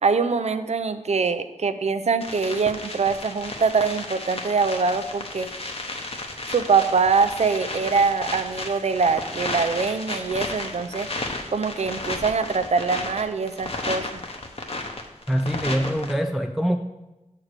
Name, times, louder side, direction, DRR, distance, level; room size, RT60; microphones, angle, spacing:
voice 1, 0.0-5.5 6.5-11.1 11.5-14.2, right 5 dB, 60° right, 0.5 m, -23 dB
sound 1, 2.2-16.1, left 2 dB, 50° left, 0.9 m, -33 dB
voice 2, 15.3-16.8, equal, ahead, 0.3 m, -24 dB
7.4 x 4.7 x 6.6 m
wide cardioid pair, 95°, 13 cm